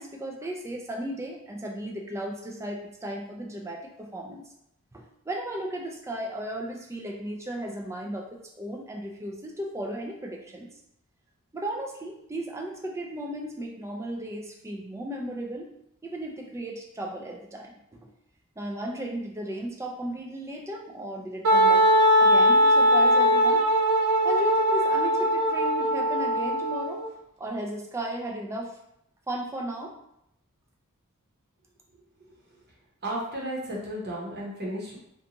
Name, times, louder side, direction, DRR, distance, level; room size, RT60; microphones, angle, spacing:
voice 1, 0.0-4.4 4.9-10.7 11.5-15.7 16.0-18.1 18.6-21.8 22.2-23.6 24.2-27.0 27.4-28.8 29.3-29.9, right 1 dB, 15° right, 0 dB, 0.3 m, -35 dB
Wind instrument woodwind instrument, 21.4-27.1, equal, 75° right, 0.5 m, -20 dB
voice 2, 33.0-35.0, right 1 dB, 45° right, -4 dB, 0.9 m, -33 dB
2.5 x 2.3 x 2.8 m, 0.79 s
head